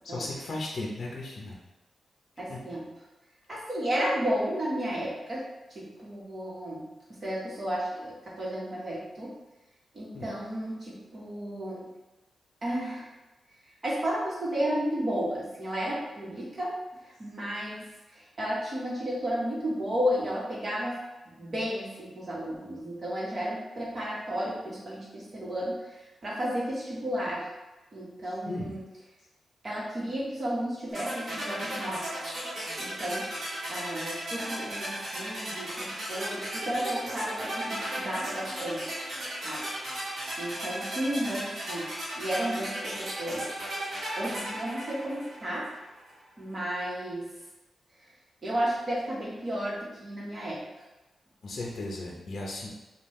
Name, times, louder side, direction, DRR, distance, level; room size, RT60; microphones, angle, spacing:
voice 1, 0.0-1.6 2.5-2.6 10.1-10.3 28.4-28.8 51.4-52.7, left 2 dB, 45° left, -2 dB, 0.7 m, -36 dB
voice 2, 2.4-2.8 3.5-5.4 5.7-6.9 7.2-9.3 9.9-11.8 12.6-13.1 13.8-16.8 17.2-17.8 18.1-21.0 21.3-25.8 26.2-27.5 27.9-28.8 29.6-32.0 32.8-33.3 33.7-39.0 39.4-39.6 40.4-43.5 44.2-45.7 46.4-47.4 48.4-50.7, equal, 35° right, -6 dB, 1.3 m, -33 dB
sound 1, 30.9-45.9, right 1 dB, 50° right, 1.2 m, -36 dB
5.3 x 2.4 x 3.2 m, 1.1 s
wide cardioid pair, 160°, 0 cm